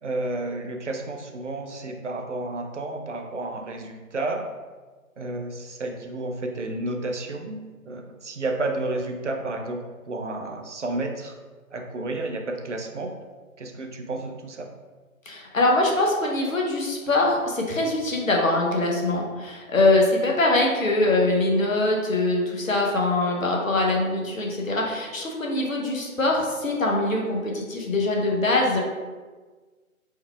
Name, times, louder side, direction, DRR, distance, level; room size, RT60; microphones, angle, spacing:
voice 1, 0.0-4.4 5.2-7.6 7.9-11.4 11.7-13.1 13.6-14.7, right 2 dB, 55° right, 4 dB, 0.6 m, -31 dB
voice 2, 15.3-28.8, left 2 dB, 65° left, 0 dB, 0.9 m, -23 dB
4.6 x 3.4 x 2.2 m, 1.4 s
figure-of-eight pair, 155°, 43 cm